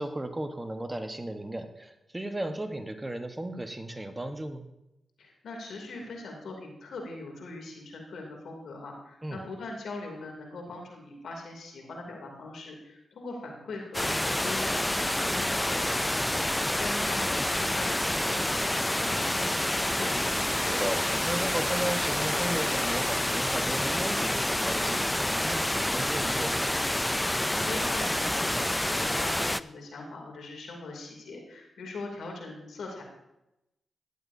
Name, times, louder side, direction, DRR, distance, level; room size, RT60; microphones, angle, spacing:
voice 1, 0.0-4.7 9.2-9.4 20.7-26.6, right 1 dB, 20° right, 7 dB, 1.2 m, -35 dB
voice 2, 5.2-20.2 27.2-33.0, left 2 dB, 80° left, 0 dB, 2.8 m, -41 dB
sound 1, 13.9-29.6, left 1 dB, 10° left, 0.4 m, -28 dB
15.0 x 11.0 x 2.7 m, 0.90 s
cardioid pair, 50°, 0 cm